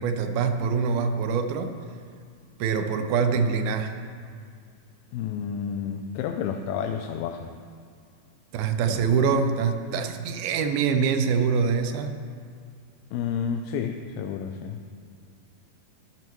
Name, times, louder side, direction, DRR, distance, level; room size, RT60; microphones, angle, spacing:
voice 1, 0.0-1.8 2.6-4.1 8.5-12.2, right 6 dB, 80° right, 7 dB, 2.5 m, -24 dB
voice 2, 5.1-7.5 8.9-9.4 13.1-14.8, left 7 dB, 85° left, 4 dB, 2.4 m, -31 dB
12.5 x 11.5 x 3.1 m, 2.2 s
omnidirectional pair, 4.3 m